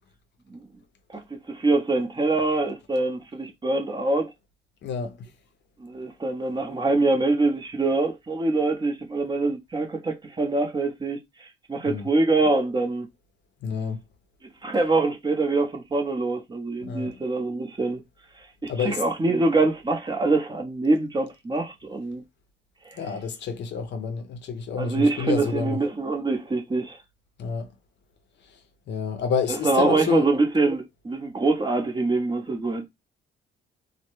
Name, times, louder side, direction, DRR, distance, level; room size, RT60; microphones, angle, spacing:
voice 1, 1.1-4.3 5.8-13.1 14.6-18.0 18.6-22.2 22.8-23.0 24.8-27.0 29.6-32.9, right 3 dB, 20° right, 0.6 m, -24 dB
voice 2, 4.8-5.3 11.8-12.1 13.6-14.0 16.8-17.1 18.7-19.0 23.0-25.8 27.4-27.7 28.5-28.6 28.9-30.3, left 6 dB, 60° left, 0.5 m, -29 dB
2.2 x 2.0 x 3.0 m
cardioid pair, 90°, 20 cm